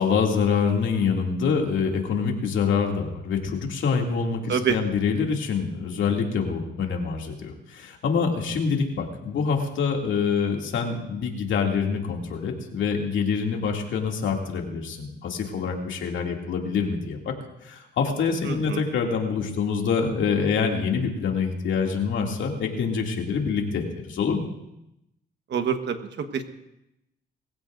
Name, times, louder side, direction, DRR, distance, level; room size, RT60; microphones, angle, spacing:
voice 1, 0.0-17.3 17.6-24.4, left 5 dB, 70° left, 1 dB, 2.6 m, -25 dB
voice 2, 18.4-18.8 25.5-26.4, right 7 dB, 60° right, 7 dB, 1.4 m, -26 dB
21.5 x 15.5 x 2.6 m, 0.88 s
cardioid pair, 90°, 20 cm